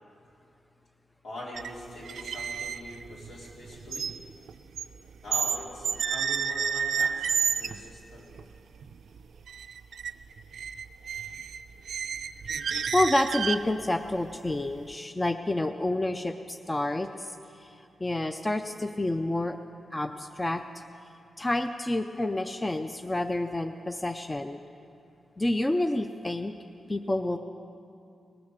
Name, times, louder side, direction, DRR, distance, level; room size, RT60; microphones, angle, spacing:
voice 1, 1.2-4.1 5.2-8.3, left 1 dB, 75° left, -6 dB, 3.7 m, -42 dB
sound 1, 1.5-1.7 2.0-5.6 5.8-7.8 8.4-8.5 8.8-9.2 9.5-10.1 10.4-13.8, right 7 dB, 80° right, 0.4 m, -30 dB
voice 2, 12.9-17.7 18.0-19.6 19.9-20.6 21.4-24.6 25.4-26.5 26.9-27.4, left 1 dB, 15° left, 8 dB, 0.4 m, -29 dB
19.5 x 7.0 x 6.6 m, 2.6 s
wide cardioid pair, 130°, 0 cm